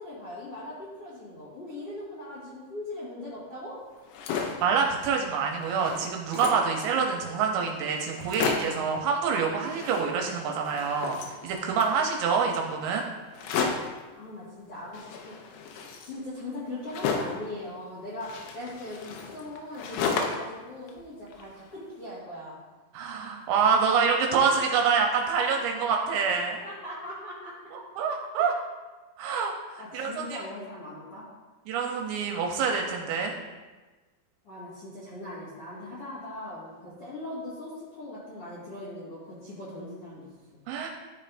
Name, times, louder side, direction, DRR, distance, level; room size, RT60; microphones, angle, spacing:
voice 1, 0.0-3.8 14.2-15.4 16.0-22.6 26.6-27.5 28.4-28.5 29.8-31.2 34.4-40.6, left 1 dB, 60° left, -9 dB, 1.5 m, -40 dB
sound 1, 4.0-4.7 5.2-5.3 5.5-6.7 7.4-7.5 7.7-7.8 8.1-8.9 9.6-10.4 10.6-12.0 13.3-14.0 14.9-17.5 18.2-20.6 20.9-21.8, left 5 dB, 85° left, 3.2 m, -33 dB
voice 2, 4.3-13.1 22.9-26.6 27.7-28.5 29.2-30.4 31.7-33.3 40.7-40.9, right 5 dB, 80° right, 1 dB, 2.7 m, -26 dB
13.0 x 5.4 x 2.5 m, 1.3 s
omnidirectional pair, 5.4 m